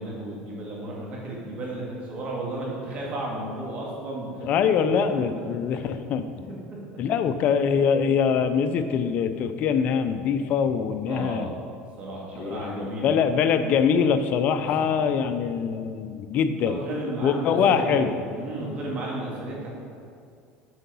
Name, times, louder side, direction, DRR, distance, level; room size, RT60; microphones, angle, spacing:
voice 1, 0.0-4.5 11.1-11.6 12.0-13.2 14.8-14.9 16.6-19.7, right 1 dB, 40° right, -4 dB, 2.1 m, -33 dB
voice 2, 4.4-6.5 7.0-11.5 12.4-16.8 17.2-18.1, left 7 dB, 50° left, 9 dB, 0.5 m, -23 dB
7.9 x 4.6 x 5.5 m, 2.3 s
supercardioid pair, 125°, 3 cm